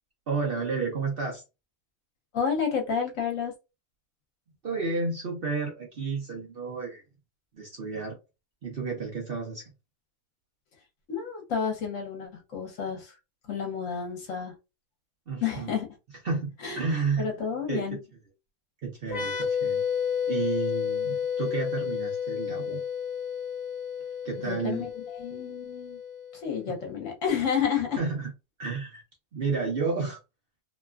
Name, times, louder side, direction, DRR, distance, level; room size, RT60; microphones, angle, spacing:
voice 1, 0.3-1.4 4.6-7.0 7.5-8.2 8.6-9.7 15.3-15.7 16.2-17.3 17.7-17.9 18.8-19.9 20.3-22.8 24.2-24.9 28.0-28.3 28.6-29.0 29.3-30.2, right 4 dB, 50° right, 0.8 m, -31 dB
voice 2, 2.3-3.5 11.1-13.1 13.5-14.5 15.4-15.9 16.6-16.8 17.2-18.0 24.4-26.0 26.3-28.0, left 7 dB, 65° left, 1.2 m, -30 dB
sound 1, 19.1-26.6, left 7 dB, 40° left, 0.6 m, -31 dB
3.0 x 2.2 x 2.3 m
omnidirectional pair, 1.5 m